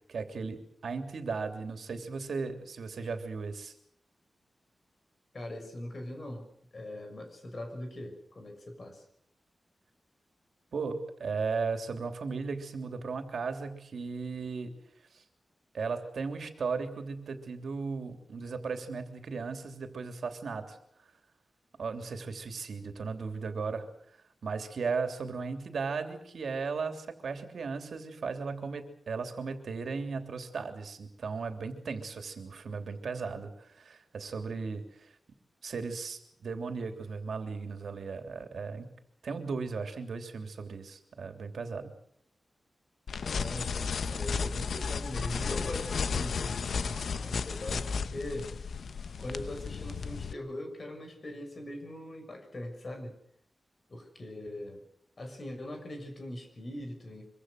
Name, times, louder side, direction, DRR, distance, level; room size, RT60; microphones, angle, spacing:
voice 1, 0.1-3.7 10.7-14.7 15.1-15.2 15.7-20.8 21.8-23.9 24.4-35.1 35.6-38.9 39.2-41.9, right 4 dB, 80° right, 6 dB, 3.2 m, -36 dB
voice 2, 5.3-6.5 6.7-9.0 43.2-48.5 49.2-53.2 53.9-54.8 55.2-57.3, left 1 dB, 40° left, 5 dB, 6.3 m, -41 dB
sound 1, 43.1-50.3, left 5 dB, 80° left, 0.9 m, -34 dB
25.0 x 24.5 x 6.6 m, 0.67 s
wide cardioid pair, 145°, 0 cm